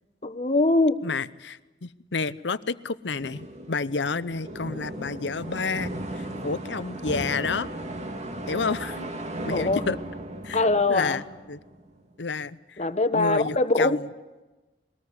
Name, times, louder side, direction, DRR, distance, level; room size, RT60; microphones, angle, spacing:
voice 1, 0.2-1.0 9.5-9.8 10.5-11.2 12.8-14.0, left 2 dB, 40° left, 11 dB, 1.3 m, -22 dB
voice 2, 1.0-7.7 8.5-9.1 9.4-10.0 10.4-10.6 10.9-11.2 11.5-11.6 12.2-12.8 13.1-14.1, left 4 dB, 80° left, 16 dB, 0.8 m, -30 dB
sound 1, 3.2-12.0, right 1 dB, 40° right, 2.2 m, -36 dB
22.5 x 19.0 x 9.9 m, 1.1 s
head